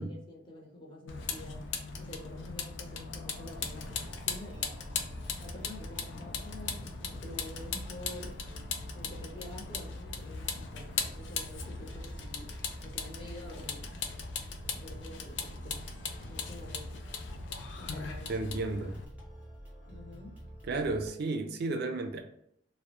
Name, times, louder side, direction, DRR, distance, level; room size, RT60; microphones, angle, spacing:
voice 1, 0.0-1.7 2.0-4.8 5.4-8.4 8.9-12.5 12.8-13.8 14.7-15.9 16.3-17.1 17.8-18.5 19.9-20.3, left 1 dB, 25° left, 0.7 m, -48 dB
Vehicle, 1.1-19.1, left 5 dB, 75° left, 0.4 m, -39 dB
sound 1, 3.4-21.1, equal, 10° right, 0.7 m, -48 dB
voice 2, 18.3-19.0 20.7-22.2, right 2 dB, 60° right, 0.4 m, -33 dB
2.3 x 2.1 x 2.8 m
head